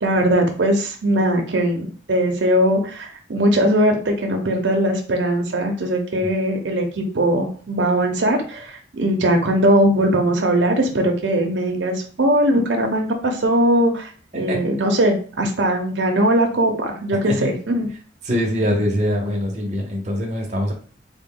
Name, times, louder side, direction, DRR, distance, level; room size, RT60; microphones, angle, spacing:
voice 1, 0.0-17.9, right 1 dB, 80° right, 3 dB, 0.7 m, -20 dB
voice 2, 14.3-14.6 17.3-17.6 18.2-20.7, equal, 40° right, 0 dB, 0.8 m, -23 dB
3.8 x 2.2 x 3.7 m, 0.42 s
head